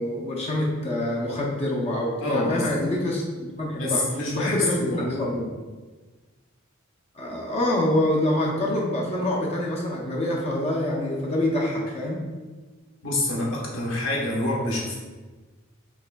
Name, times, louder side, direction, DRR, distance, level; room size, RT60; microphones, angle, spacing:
voice 1, 0.0-4.0 4.3-5.5 7.2-12.3, left 1 dB, 30° left, -2 dB, 0.5 m, -26 dB
voice 2, 2.2-2.7 3.8-5.3 13.0-15.0, left 1 dB, 65° left, -4 dB, 1.0 m, -27 dB
4.8 x 3.2 x 2.2 m, 1.3 s
head